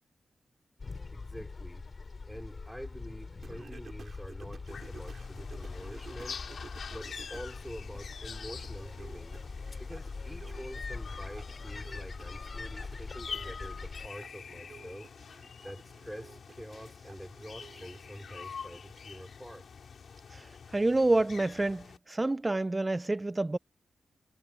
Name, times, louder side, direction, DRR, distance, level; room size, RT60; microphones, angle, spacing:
sound 1, 0.8-14.1, left 4 dB, 40° left, 3.8 m, -43 dB
voice 1, 1.0-1.9 2.3-6.4 6.9-9.4 9.8-15.1 15.6-19.7, equal, ahead, 3.9 m, -46 dB
Singing, 3.4-7.6 7.9-18.3, right 5 dB, 50° right, 6.1 m, -54 dB
sound 2, 4.7-22.0, left 6 dB, 65° left, 5.2 m, -46 dB
voice 2, 20.7-23.6, right 2 dB, 20° right, 0.7 m, -28 dB
wide cardioid pair, 105°, 0 cm